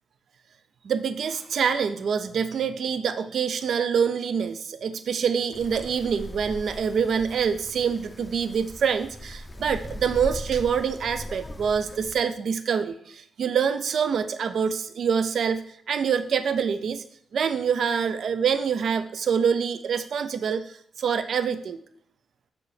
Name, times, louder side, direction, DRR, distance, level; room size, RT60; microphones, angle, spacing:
voice 1, 0.8-17.0 17.3-21.8, right 7 dB, 65° right, 11 dB, 0.3 m, -26 dB
Wind, 5.5-12.1, left 1 dB, 10° left, 0.6 m, -39 dB
6.9 x 4.7 x 3.2 m, 0.66 s
cardioid pair, 120°, 0 cm